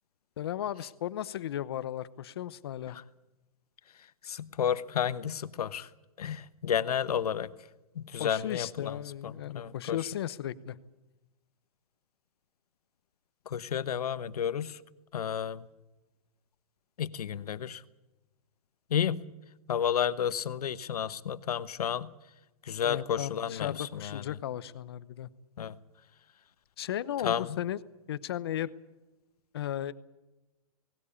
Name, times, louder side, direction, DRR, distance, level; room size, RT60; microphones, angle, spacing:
voice 1, 0.4-3.0 8.1-10.8 22.8-25.3 26.8-27.8 28.1-28.7 29.5-29.9, left 11 dB, 40° left, 16 dB, 0.9 m, -35 dB
voice 2, 4.2-5.9 6.2-7.5 8.0-8.9 9.2-10.0 13.5-14.8 15.1-15.6 17.0-17.8 18.9-19.2 19.7-22.1 22.7-24.2 25.6-25.7 27.2-27.6, left 8 dB, 90° left, 14 dB, 1.1 m, -31 dB
19.0 x 19.0 x 8.5 m, 1.0 s
hypercardioid pair, 180°, 19 cm